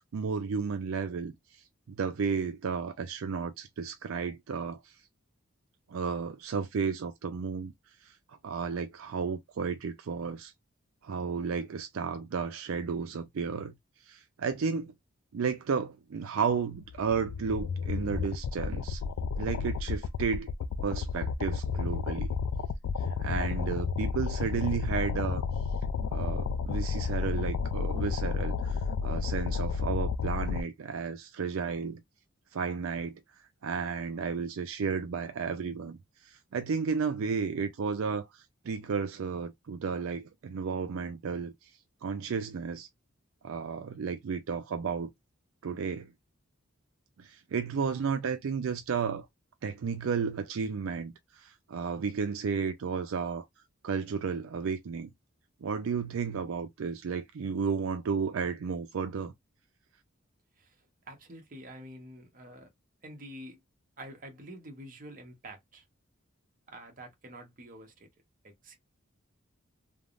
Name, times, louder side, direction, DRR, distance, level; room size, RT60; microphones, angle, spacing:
voice 1, 0.1-1.3 1.9-4.8 5.9-7.7 8.0-10.5 11.0-13.7 14.1-14.9 15.3-19.0 19.4-20.5 20.8-22.3 23.2-25.4 26.0-32.0 32.5-33.2 33.6-36.0 36.2-41.5 42.0-42.9 43.4-45.1 45.6-46.1 47.2-49.3 49.6-53.5 53.8-55.1 55.6-59.3, right 5 dB, 75° right, 0.4 m, -33 dB
sound 1, 16.8-30.6, left 5 dB, 90° left, 0.3 m, -31 dB
voice 2, 61.1-62.7 63.0-63.6 64.0-65.8 66.7-68.1 68.4-68.8, right 1 dB, 40° right, 0.8 m, -47 dB
3.4 x 2.0 x 2.4 m
head